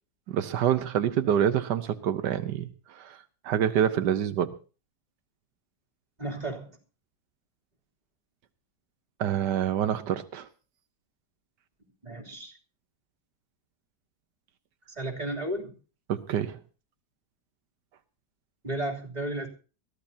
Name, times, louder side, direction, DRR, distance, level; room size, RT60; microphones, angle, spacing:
voice 1, 0.3-3.2 3.4-4.5 9.2-10.5 16.1-16.6, right 9 dB, 85° right, 10 dB, 1.5 m, -27 dB
voice 2, 6.2-6.7 12.0-12.5 14.9-15.7 18.6-19.5, right 1 dB, 25° right, 1 dB, 3.2 m, -33 dB
22.0 x 15.0 x 2.8 m, 0.36 s
omnidirectional pair, 1.8 m